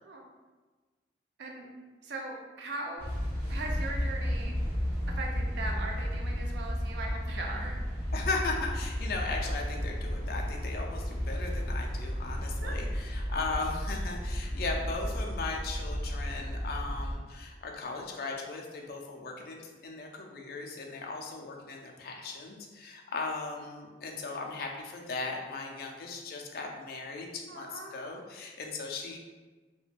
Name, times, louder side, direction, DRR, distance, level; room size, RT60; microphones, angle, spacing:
voice 1, 2.0-3.1 3.5-4.6 5.1-7.8 12.6-12.7 27.5-28.0, right 2 dB, 70° right, 0 dB, 0.4 m, -39 dB
sound 1, 3.0-17.1, equal, 10° left, 0.8 m, -33 dB
voice 2, 8.1-29.2, left 3 dB, 55° left, 1 dB, 0.4 m, -37 dB
2.4 x 2.2 x 3.2 m, 1.3 s
head